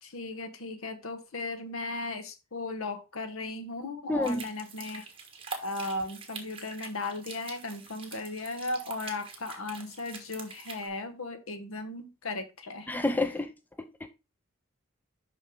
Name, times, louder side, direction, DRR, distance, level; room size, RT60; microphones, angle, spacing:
voice 1, 0.0-5.1 5.6-12.9, left 2 dB, 80° left, 1.1 m, -36 dB
voice 2, 4.1-4.4 12.9-13.5 13.8-14.1, left 2 dB, 10° left, 0.4 m, -29 dB
sound 1, 4.2-10.9, right 4 dB, 25° right, 1.2 m, -45 dB
5.7 x 5.6 x 3.5 m
head